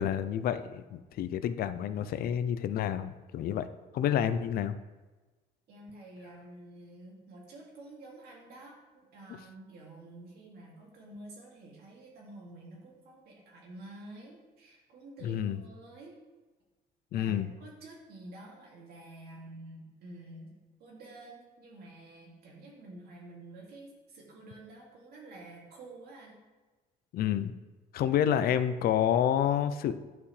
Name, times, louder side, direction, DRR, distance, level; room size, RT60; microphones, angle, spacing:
voice 1, 0.0-3.7 3.9-4.7 15.2-15.6 17.1-17.5 27.1-27.5 27.9-29.9, left 9 dB, 65° left, 12 dB, 0.5 m, -29 dB
voice 2, 5.7-16.2 17.1-20.5 20.8-26.4, right 2 dB, 70° right, -2 dB, 2.3 m, -49 dB
10.5 x 5.7 x 3.2 m, 1.2 s
cardioid pair, 110°, 17 cm